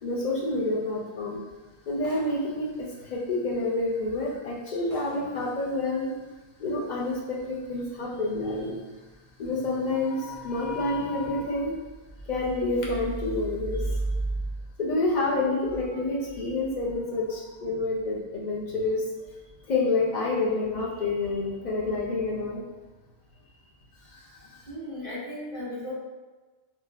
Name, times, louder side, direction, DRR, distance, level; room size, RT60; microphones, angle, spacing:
voice 1, 0.0-1.4 1.9-6.1 6.6-8.8 9.4-11.7 12.3-14.5 14.8-19.3 19.7-22.6 24.0-24.7, left 2 dB, 55° left, -4 dB, 0.5 m, -28 dB
sound 1, 2.0-2.6 3.6-3.7 4.3-4.4 4.9-5.4, right 1 dB, 45° right, 0.5 m, -48 dB
voice 2, 24.7-25.9, left 1 dB, 30° left, -10 dB, 0.9 m, -36 dB
3.1 x 2.1 x 2.2 m, 1.2 s
omnidirectional pair, 1.1 m